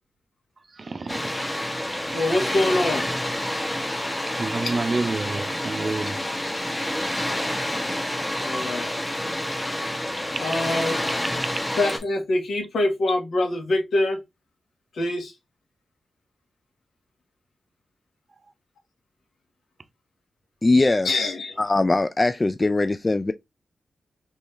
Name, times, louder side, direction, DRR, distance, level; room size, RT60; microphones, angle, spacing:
voice 1, 0.7-1.6 4.3-6.3 10.3-10.4, right 3 dB, 50° right, 0.5 m, -29 dB
Water, 1.1-12.0, left 1 dB, 15° left, 1.1 m, -28 dB
voice 2, 2.1-3.1 6.1-6.2 8.4-9.0 10.4-11.0 11.8-14.2 14.9-15.3 21.0-21.6, left 2 dB, 75° left, 1.4 m, -24 dB
voice 3, 20.6-21.3 21.6-23.3, left 2 dB, 35° left, 0.3 m, -21 dB
3.2 x 3.1 x 3.1 m
supercardioid pair, 40°, 0 cm